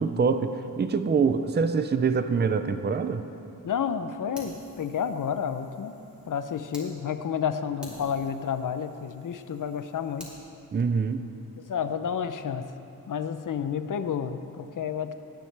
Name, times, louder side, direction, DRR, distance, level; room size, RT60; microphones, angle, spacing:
voice 1, 0.0-3.2 10.7-11.2, right 5 dB, 30° right, 10 dB, 0.5 m, -25 dB
voice 2, 3.6-6.0 6.2-10.3 11.7-12.7 13.1-15.1, left 7 dB, 60° left, 10 dB, 0.6 m, -30 dB
Fire, 4.3-6.9 7.3-7.4 7.8-10.4, equal, 5° right, 2.4 m, -49 dB
17.5 x 9.5 x 3.4 m, 2.7 s
wide cardioid pair, 110°, 36 cm